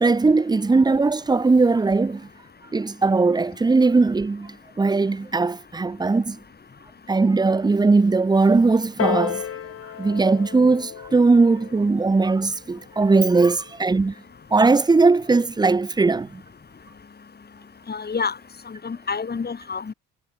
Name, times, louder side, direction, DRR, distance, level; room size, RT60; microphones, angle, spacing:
voice 1, 0.0-2.3 2.7-6.4 7.1-9.5 10.0-14.1 14.5-16.4, right 3 dB, 15° right, 0.6 m, -19 dB
Piano, 9.0-14.2 15.0-15.1, left 9 dB, 50° left, 1.2 m, -33 dB
voice 2, 17.9-18.3 18.7-19.9, left 5 dB, 35° left, 2.7 m, -28 dB
cardioid pair, 90°, 30 cm